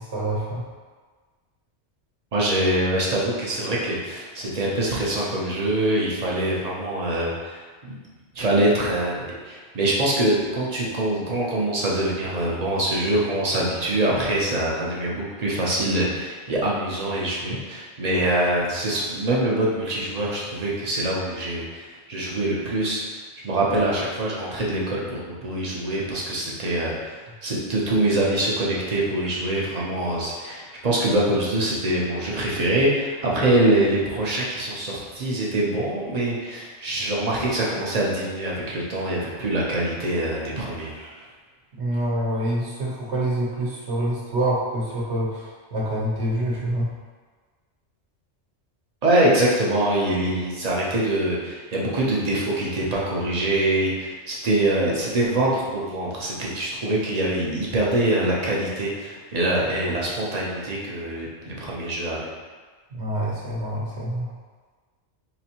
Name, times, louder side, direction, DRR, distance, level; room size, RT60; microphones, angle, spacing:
voice 1, 0.1-0.6 41.8-45.4 45.7-46.9 62.9-64.3, right 1 dB, 70° right, -5 dB, 1.2 m, -26 dB
voice 2, 2.3-8.0 8.4-23.0 23.4-41.1 49.0-62.3, right 1 dB, 40° right, -5 dB, 0.7 m, -24 dB
4.0 x 2.6 x 2.9 m, 1.4 s
omnidirectional pair, 1.2 m